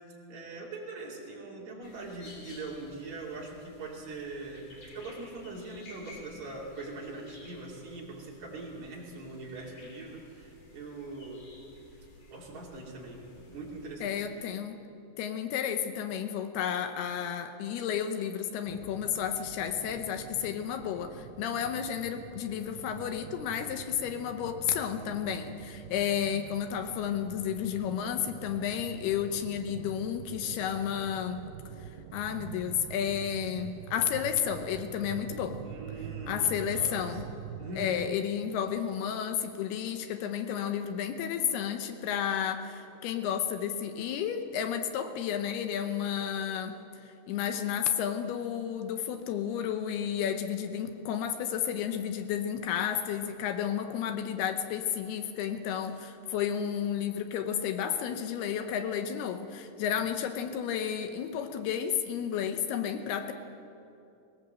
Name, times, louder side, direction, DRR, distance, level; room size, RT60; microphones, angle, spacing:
voice 1, 0.3-4.7 4.9-11.4 12.3-14.2 35.6-37.2 37.6-38.1, right 2 dB, 45° right, -3 dB, 3.8 m, -42 dB
sound 1, 1.8-14.0, left 2 dB, 45° left, 3.8 m, -54 dB
voice 2, 14.0-14.8 15.2-31.4 32.1-35.6 36.3-37.3 37.8-63.3, left 9 dB, 75° left, 8 dB, 2.8 m, -32 dB
sound 2, 18.7-38.1, right 10 dB, 80° right, 2.6 m, -45 dB
20.0 x 19.0 x 7.6 m, 2.7 s
omnidirectional pair, 4.8 m